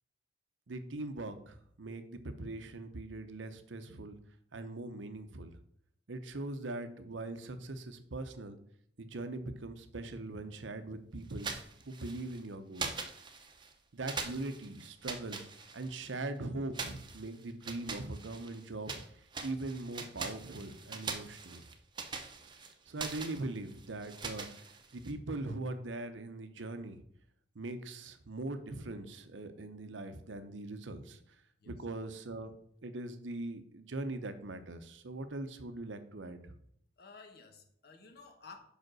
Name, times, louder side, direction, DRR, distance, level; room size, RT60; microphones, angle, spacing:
voice 1, 0.7-4.2 4.5-5.6 6.1-8.6 9.0-11.5 11.9-13.1 13.9-15.4 15.7-18.9 19.4-21.6 22.9-24.5 24.9-27.0 27.6-31.2 31.7-32.5 32.8-36.5, right 2 dB, 90° right, 0.8 m, -41 dB
sound 1, 11.3-12.4 12.7-13.7 14.1-16.1 16.7-19.1 19.3-25.1, right 4 dB, 25° right, 0.8 m, -43 dB
voice 2, 37.0-38.6, left 4 dB, 60° left, 1.1 m, -53 dB
5.2 x 5.0 x 6.2 m
head